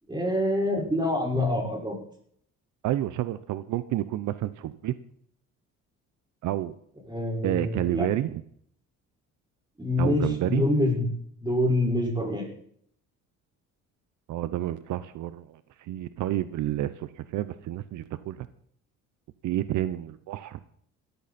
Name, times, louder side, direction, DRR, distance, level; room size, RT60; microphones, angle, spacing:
voice 1, 0.1-1.9 7.1-8.1 9.8-11.1 11.4-12.5, left 1 dB, 15° right, -1 dB, 6.4 m, -26 dB
voice 2, 2.8-4.9 6.4-6.7 7.4-8.3 10.0-10.6 14.3-15.6 15.9-18.5 19.4-20.6, right 13 dB, 75° right, 13 dB, 0.9 m, -29 dB
16.5 x 14.0 x 4.3 m, 0.64 s
cardioid pair, 95°, 30 cm